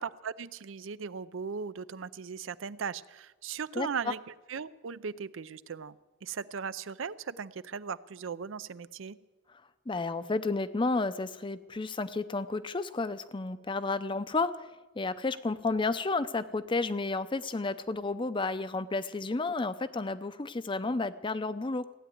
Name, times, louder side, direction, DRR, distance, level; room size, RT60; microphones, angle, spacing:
voice 1, 0.0-4.2 4.5-5.9 6.2-9.2, right 6 dB, 75° right, 16 dB, 0.5 m, -38 dB
voice 2, 9.9-14.7 15.0-21.9, left 3 dB, 25° left, 13 dB, 0.6 m, -31 dB
16.0 x 9.1 x 9.2 m, 1.2 s
head